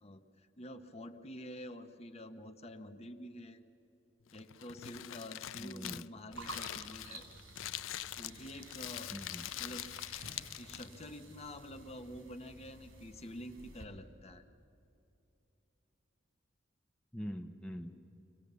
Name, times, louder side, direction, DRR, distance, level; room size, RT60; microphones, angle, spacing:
voice 1, 0.0-3.6 4.3-7.3 8.2-9.2 9.6-9.9 10.6-14.4, left 1 dB, 35° left, 7 dB, 1.0 m, -48 dB
Crumpling crinkling, 4.3-11.0, left 13 dB, 80° left, 0.4 m, -44 dB
voice 2, 5.6-6.1 9.1-9.5 17.1-18.1, equal, 5° left, 3 dB, 0.7 m, -43 dB
sound 1, 6.3-13.8, right 2 dB, 90° right, 3.3 m, -52 dB
25.0 x 18.0 x 6.9 m, 2.8 s
head